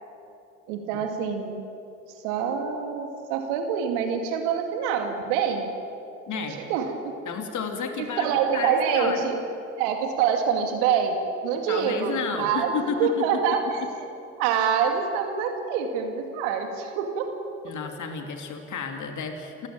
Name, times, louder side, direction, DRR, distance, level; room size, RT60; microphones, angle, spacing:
voice 1, 0.7-1.6 2.2-5.7 6.3-6.4 6.7-7.2 8.0-9.4 9.8-11.2 11.4-14.1 14.4-17.3, right 7 dB, 80° right, 5 dB, 2.4 m, -26 dB
voice 2, 6.3-6.7 7.3-9.2 11.7-13.3 17.6-19.7, left 6 dB, 60° left, 4 dB, 2.9 m, -32 dB
28.0 x 15.0 x 8.9 m, 2.7 s
hypercardioid pair, 50°, 34 cm